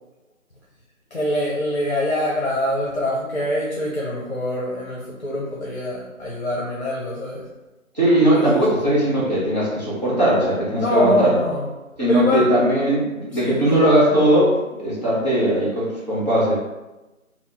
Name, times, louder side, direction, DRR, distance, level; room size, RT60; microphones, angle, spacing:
voice 1, 1.1-7.5 8.3-8.8 10.8-11.7 12.1-12.5 13.3-13.8, left 1 dB, 50° left, -5 dB, 0.7 m, -24 dB
voice 2, 7.9-11.3 12.0-16.5, right 1 dB, 30° right, -9 dB, 1.0 m, -19 dB
4.0 x 2.0 x 2.8 m, 1.0 s
figure-of-eight pair, 175°, 41 cm